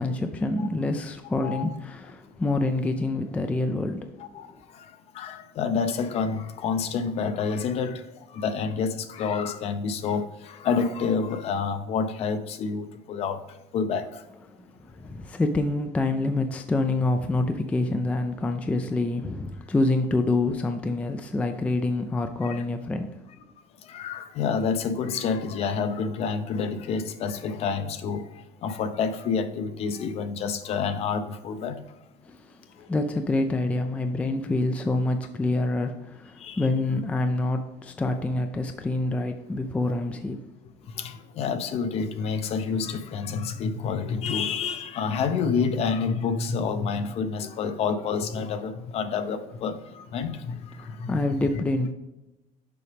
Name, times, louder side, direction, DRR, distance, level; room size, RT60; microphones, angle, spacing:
voice 1, 0.0-4.4 14.5-23.2 32.3-32.6 32.9-40.4 50.8-51.9, left 2 dB, 10° left, 0.3 m, -27 dB
voice 2, 5.1-8.0 8.3-13.4 13.7-14.1 22.4-22.6 23.9-28.2 28.6-31.8 36.4-36.7 41.0-51.3, left 5 dB, 45° left, 0.6 m, -28 dB
6.9 x 4.9 x 3.4 m
cardioid pair, 155°, 15 cm